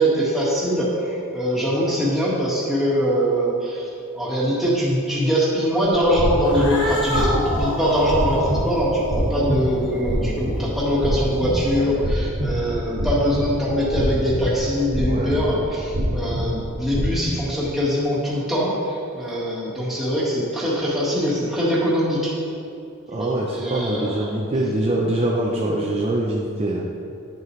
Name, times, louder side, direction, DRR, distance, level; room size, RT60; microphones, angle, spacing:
voice 1, 0.0-3.9 4.1-22.3 23.1-24.4, equal, ahead, -8 dB, 1.6 m, -22 dB
sound 1, 5.8-17.1, equal, 65° right, 1.6 m, -26 dB
Cat, 6.4-12.0, equal, 60° left, 1.3 m, -29 dB
voice 2, 23.1-26.8, right 1 dB, 30° right, -3 dB, 0.6 m, -24 dB
8.7 x 6.6 x 3.1 m, 2.5 s
head